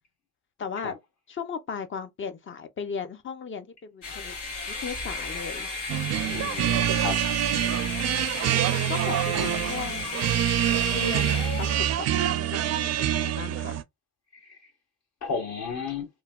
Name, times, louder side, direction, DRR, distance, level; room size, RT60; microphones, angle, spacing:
voice 1, 0.6-0.9 1.3-4.3 4.7-5.7 8.9-10.1 10.9-12.1 12.5-13.8, left 6 dB, 40° left, 0.6 m, -36 dB
sound 1, 4.0-12.1, left 3 dB, 90° left, 1.4 m, -34 dB
sound 2, 5.9-13.8, right 12 dB, 60° right, 0.4 m, -26 dB
voice 2, 6.3-7.2 14.3-14.6 15.2-16.1, left 5 dB, 60° left, 1.9 m, -33 dB
3.1 x 2.2 x 2.3 m
cardioid pair, 90°, 30 cm